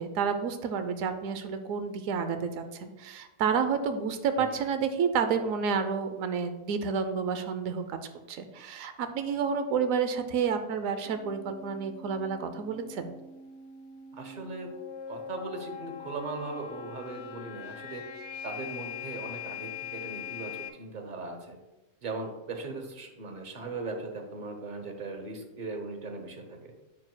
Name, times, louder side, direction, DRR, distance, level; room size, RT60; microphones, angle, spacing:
voice 1, 0.0-8.0 8.3-13.1, right 6 dB, 70° right, 9 dB, 1.0 m, -30 dB
sound 1, 11.0-20.7, left 7 dB, 70° left, 1.3 m, -42 dB
voice 2, 14.1-14.7 15.1-18.0 18.4-21.6 22.0-26.7, right 3 dB, 40° right, 4 dB, 0.9 m, -39 dB
8.7 x 6.2 x 2.2 m, 1.0 s
omnidirectional pair, 1.5 m